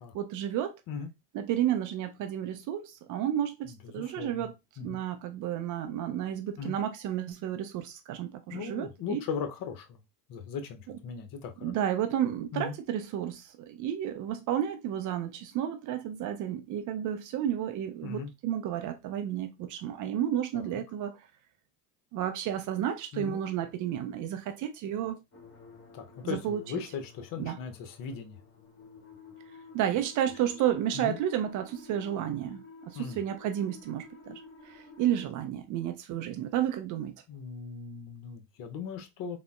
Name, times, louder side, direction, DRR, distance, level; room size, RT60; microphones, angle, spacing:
voice 1, 0.1-0.8 1.3-4.5 4.8-9.2 10.9-11.0 11.6-21.2 22.1-25.2 26.2-26.6 27.4-27.6 29.7-37.2, right 10 dB, 40° right, 0.4 m, -32 dB
voice 2, 3.6-5.0 6.6-6.8 8.5-10.0 10.3-11.7 12.5-12.7 18.0-18.3 20.5-20.8 23.1-23.4 25.9-28.4 30.9-31.2 32.9-33.2 37.3-39.4, left 6 dB, 45° left, 0.7 m, -38 dB
sound 1, 25.3-35.2, left 4 dB, 25° left, 1.2 m, -52 dB
3.5 x 2.1 x 2.2 m
hypercardioid pair, 80°, 49 cm